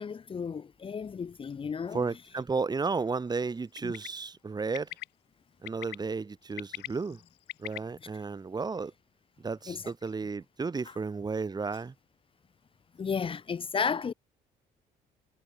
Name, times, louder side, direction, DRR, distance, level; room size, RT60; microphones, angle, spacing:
voice 1, 0.0-2.1 3.8-3.9 8.0-8.1 9.7-9.8 10.8-10.9 13.0-14.1, left 6 dB, 30° left, 1.4 m, -33 dB
voice 2, 1.9-4.9 5.6-7.2 7.6-8.9 9.4-11.9, right 4 dB, 25° right, 2.9 m, -33 dB
Bird, 3.8-4.1 4.7-5.0 5.7-6.0 6.4-7.8, left 18 dB, 85° left, 1.9 m, -40 dB
cardioid pair, 110°, 17 cm